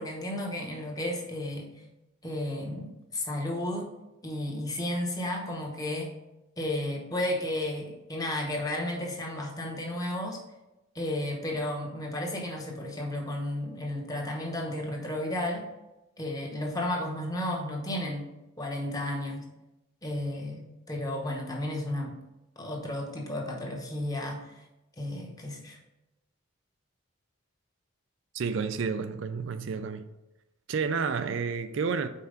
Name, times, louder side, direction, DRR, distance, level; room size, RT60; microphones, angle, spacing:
voice 1, 0.0-1.7 2.2-3.9 4.2-6.1 6.6-10.4 10.9-15.7 16.2-18.3 18.6-19.5 20.0-22.2 22.6-24.5 25.0-25.8, left 1 dB, 15° left, 0.9 m, -33 dB
voice 2, 28.3-30.1 30.7-32.1, right 5 dB, 60° right, 0.4 m, -30 dB
5.6 x 4.6 x 5.0 m
head